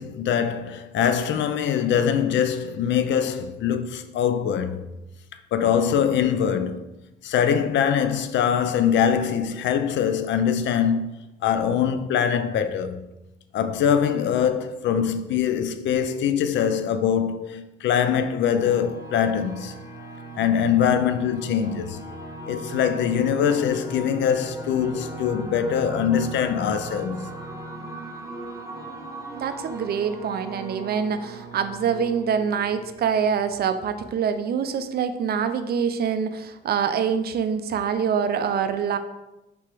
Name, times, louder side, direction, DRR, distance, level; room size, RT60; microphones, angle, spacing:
voice 1, 0.0-4.9 5.5-6.8 7.2-13.0 13.5-19.7 20.3-22.1 22.5-27.3, left 8 dB, 65° left, 0.4 m, -23 dB
sound 1, 18.5-33.8, right 2 dB, 15° right, 0.9 m, -38 dB
voice 2, 29.3-39.0, right 7 dB, 55° right, 0.4 m, -25 dB
3.4 x 2.9 x 4.6 m
cardioid pair, 90°, 20 cm